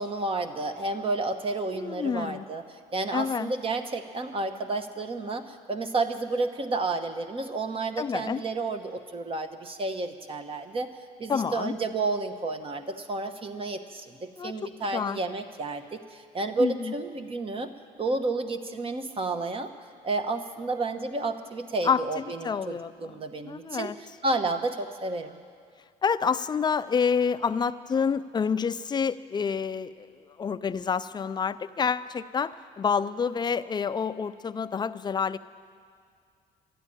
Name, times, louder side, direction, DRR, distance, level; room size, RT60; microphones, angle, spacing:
voice 1, 0.0-2.6 2.9-10.9 11.2-17.7 18.0-19.7 20.0-23.9 24.2-25.3, right 3 dB, 35° right, 8 dB, 1.0 m, -31 dB
voice 2, 1.7-2.5 3.1-3.5 8.0-8.4 11.3-11.7 14.4-15.2 16.6-16.9 21.8-23.2 23.4-23.9 26.0-35.4, left 6 dB, 25° left, 13 dB, 0.4 m, -28 dB
12.5 x 10.0 x 9.9 m, 2.2 s
cardioid pair, 110°, 17 cm